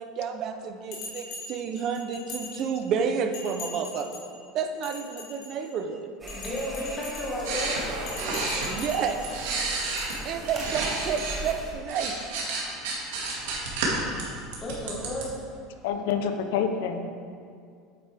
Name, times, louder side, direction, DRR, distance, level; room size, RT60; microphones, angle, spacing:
voice 1, 0.0-4.2 4.5-6.1 8.7-9.2 10.2-12.2, right 6 dB, 35° right, 6 dB, 0.6 m, -30 dB
Bell, 0.9-3.0 3.3-4.3 4.7-5.8 6.3-7.5 8.0-9.3 10.0-10.1, left 3 dB, 45° left, 2.1 m, -41 dB
sound 1, 6.2-11.7, right 1 dB, 10° right, 1.2 m, -40 dB
voice 2, 6.3-8.2 14.5-15.4, left 1 dB, 20° left, -4 dB, 1.6 m, -33 dB
sound 2, 7.4-11.4 11.7-15.2, right 3 dB, 90° right, 2.0 m, -31 dB
voice 3, 15.8-17.2, left 7 dB, 70° left, 6 dB, 0.7 m, -27 dB
8.6 x 8.0 x 3.5 m, 2.3 s
cardioid pair, 165°, 0 cm